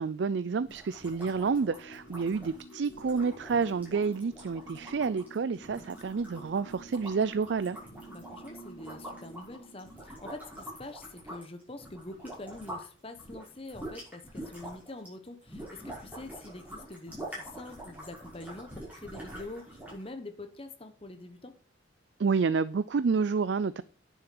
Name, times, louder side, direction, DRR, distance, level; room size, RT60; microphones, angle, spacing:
voice 1, 0.0-7.8 22.2-23.8, right 5 dB, 65° right, 0.4 m, -29 dB
sound 1, 0.6-12.9 13.2-20.1, right 1 dB, 10° right, 5.7 m, -46 dB
sound 2, 1.3-10.0, right 1 dB, 70° left, 2.4 m, -51 dB
voice 2, 8.1-21.5, left 2 dB, 30° left, 1.2 m, -45 dB
9.8 x 7.4 x 6.0 m
head